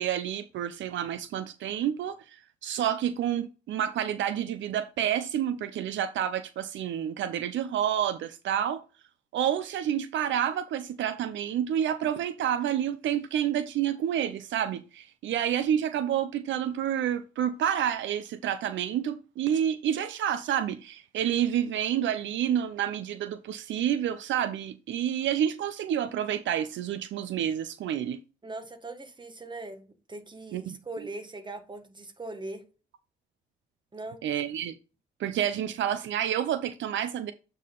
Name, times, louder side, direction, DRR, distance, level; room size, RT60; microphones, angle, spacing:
voice 1, 0.0-2.4 2.6-8.8 9.3-28.2 30.5-30.8 34.2-34.7 35.2-37.3, right 10 dB, 70° right, 0.6 m, -29 dB
voice 2, 28.4-32.6 33.9-34.2, right 2 dB, 25° right, 1.6 m, -40 dB
8.3 x 3.9 x 3.9 m
cardioid pair, 90°, 20 cm